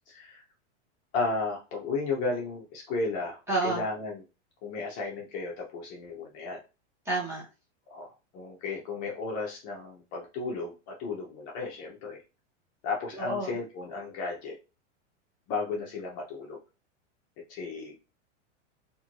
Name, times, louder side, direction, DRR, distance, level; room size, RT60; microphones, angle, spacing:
voice 1, 0.1-0.4 1.1-4.2 4.6-6.6 7.9-8.1 8.3-12.2 12.8-14.6 15.5-16.6 17.5-17.9, left 3 dB, 35° left, -1 dB, 0.6 m, -34 dB
voice 2, 3.5-3.8 7.1-7.4 13.1-13.5, right 2 dB, 5° right, -6 dB, 1.0 m, -29 dB
2.6 x 2.5 x 2.9 m, 0.31 s
supercardioid pair, 155°, 36 cm